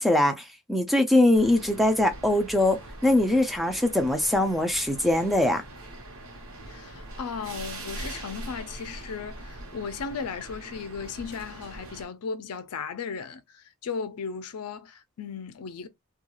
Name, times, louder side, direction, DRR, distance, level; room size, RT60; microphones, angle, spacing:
voice 1, 0.0-5.6, left 1 dB, ahead, 0.3 m, -22 dB
sound 1, 1.3-12.1, right 2 dB, 65° right, 0.9 m, -42 dB
voice 2, 6.7-15.9, left 5 dB, 80° left, 0.5 m, -36 dB
2.3 x 2.3 x 2.9 m
head